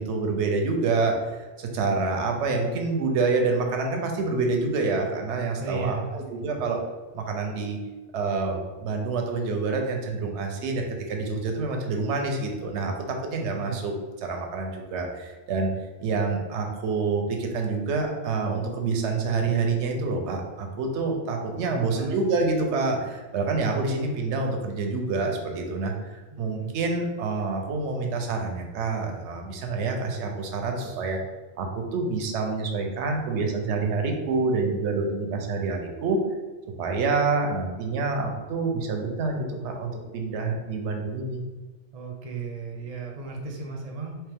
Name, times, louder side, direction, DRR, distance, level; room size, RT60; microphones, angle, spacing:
voice 1, 0.0-6.8 7.1-7.8 8.1-15.7 16.0-31.2 31.6-36.2 36.8-41.4, right 3 dB, 80° right, 2 dB, 0.9 m, -27 dB
voice 2, 5.6-6.2 13.6-13.8 21.5-22.1 26.3-26.7 41.9-44.2, right 5 dB, 40° right, 1 dB, 0.6 m, -35 dB
3.3 x 3.0 x 3.4 m, 1.3 s
omnidirectional pair, 1.2 m